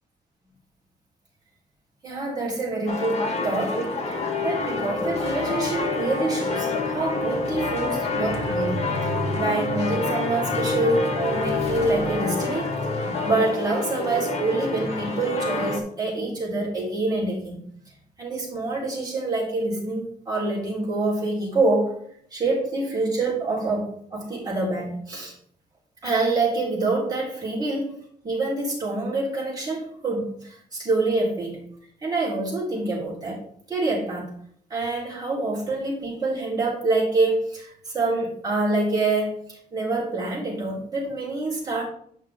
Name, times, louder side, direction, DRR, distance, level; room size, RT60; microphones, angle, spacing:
voice 1, 2.0-3.8 4.4-17.6 18.2-21.9 22.3-25.3 26.0-27.9 28.2-31.6 32.0-33.4 33.7-34.3 34.7-41.8, right 2 dB, 25° right, -6 dB, 4.0 m, -26 dB
sound 1, 2.9-15.8, left 3 dB, 40° left, 1.7 m, -27 dB
9.8 x 5.6 x 3.7 m, 0.63 s
wide cardioid pair, 160°, 17 cm